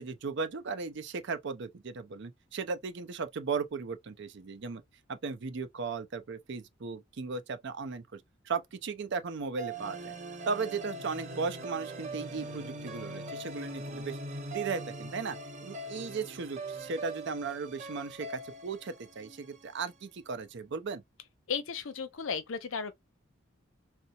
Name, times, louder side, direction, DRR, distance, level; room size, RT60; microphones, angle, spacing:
voice 1, 0.0-4.8 5.1-10.1 10.5-14.2 14.5-15.4 15.6-21.0, right 4 dB, 60° right, 0.5 m, -36 dB
sound 1, 9.6-19.8, right 2 dB, 40° right, 0.9 m, -42 dB
voice 2, 21.5-22.9, left 6 dB, 80° left, 0.6 m, -34 dB
4.1 x 2.1 x 2.6 m
head